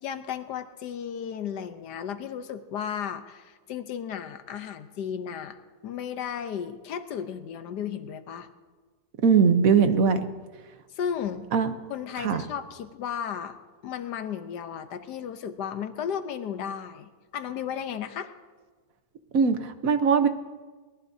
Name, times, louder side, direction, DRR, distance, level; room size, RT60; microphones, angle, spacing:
voice 1, 0.0-5.6 5.8-8.5 10.9-11.4 11.9-13.6 13.8-18.3, left 8 dB, 80° left, 9 dB, 1.5 m, -34 dB
voice 2, 9.2-10.2 11.5-11.7 12.2-12.4 19.3-20.3, right 6 dB, 60° right, 9 dB, 1.3 m, -20 dB
22.5 x 18.5 x 2.8 m, 1.4 s
omnidirectional pair, 1.8 m